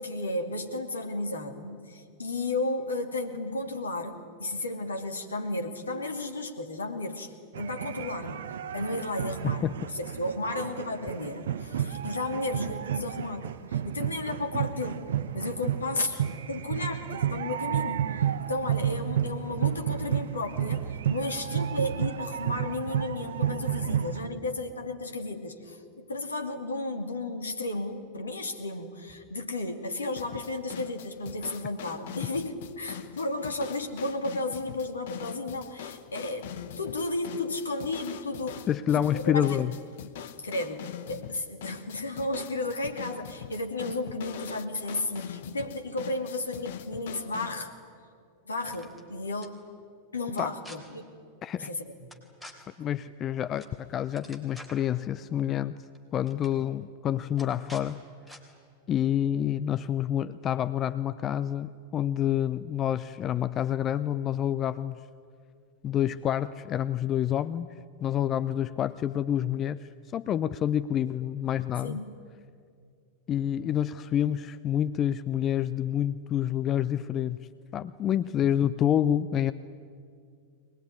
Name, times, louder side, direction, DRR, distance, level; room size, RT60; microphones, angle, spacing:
voice 1, 0.0-8.4 8.7-9.7 9.9-15.1 15.3-38.7 38.9-39.7 40.4-47.7 48.5-49.6 50.1-51.1 51.6-52.1 71.8-72.1, left 2 dB, 75° left, 5 dB, 2.4 m, -33 dB
sound 1, 7.5-24.3, right 9 dB, 60° right, 0.8 m, -31 dB
sound 2, 30.2-47.6, left 10 dB, 55° left, 1.1 m, -43 dB
voice 2, 38.7-39.7 50.4-50.5 51.4-51.7 52.8-55.8 56.1-58.0 58.9-65.0 65.8-67.7 68.0-72.0 73.3-77.5 77.7-79.5, left 10 dB, 30° left, 14 dB, 0.6 m, -28 dB
sound 3, 48.6-49.0 49.4-49.5 50.3-50.8 52.1-52.5 53.6-53.8 54.0-54.9 55.8-56.0 56.2-56.5 57.4-57.9 58.3-58.4, left 1 dB, 5° left, 3.4 m, -48 dB
23.0 x 20.0 x 9.7 m, 2.3 s
figure-of-eight pair, 90°, 0 cm